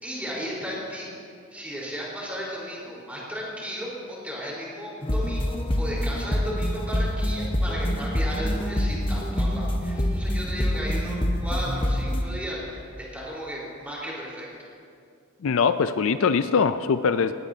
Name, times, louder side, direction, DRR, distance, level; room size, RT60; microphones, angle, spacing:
voice 1, 0.0-1.1 1.5-14.5, equal, 5° right, -5 dB, 4.0 m, -35 dB
sound 1, 5.0-12.2, equal, 25° left, 1.0 m, -26 dB
voice 2, 15.4-17.3, left 5 dB, 65° left, 11 dB, 0.4 m, -22 dB
19.0 x 17.5 x 2.8 m, 2.3 s
head